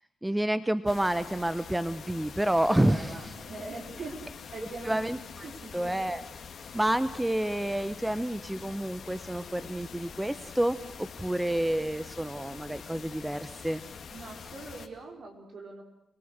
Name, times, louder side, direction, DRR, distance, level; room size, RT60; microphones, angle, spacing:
voice 1, 0.2-3.1 4.9-5.2 5.7-6.2 6.7-13.8, right 1 dB, 10° right, 13 dB, 1.1 m, -29 dB
sound 1, 0.9-14.9, left 6 dB, 60° left, 2.0 m, -45 dB
voice 2, 2.7-4.1 4.5-5.0 5.4-5.9 14.1-15.8, right 3 dB, 60° right, 1 dB, 5.5 m, -42 dB
29.5 x 20.0 x 6.7 m, 0.82 s
hypercardioid pair, 45°, 0 cm